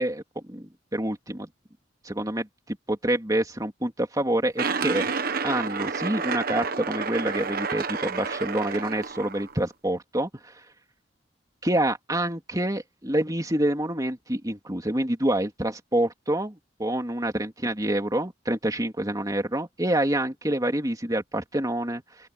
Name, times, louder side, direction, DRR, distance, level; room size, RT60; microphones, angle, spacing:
voice 1, 0.0-1.5 2.0-5.0 5.4-10.3 11.6-22.3, right 1 dB, 20° right, 3.0 m, -27 dB
sound 1, 4.6-9.5, right 5 dB, 55° right, 1.2 m, -30 dB
open air
head